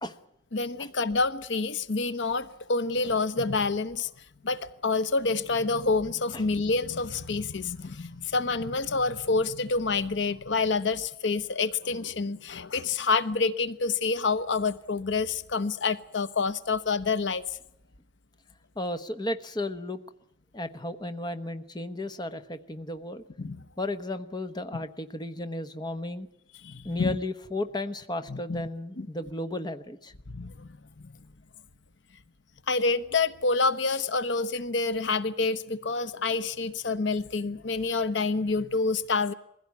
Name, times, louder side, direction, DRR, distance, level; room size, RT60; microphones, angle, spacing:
voice 1, 0.5-4.1 4.4-17.4 23.4-23.6 26.6-27.1 28.3-28.6 29.0-29.1 30.3-30.7 32.7-39.3, left 4 dB, 70° left, 0.9 m, -27 dB
voice 2, 18.8-20.0 20.5-23.2 23.8-26.3 26.8-30.1, left 1 dB, 20° left, 1.1 m, -34 dB
21.5 x 16.0 x 9.5 m
head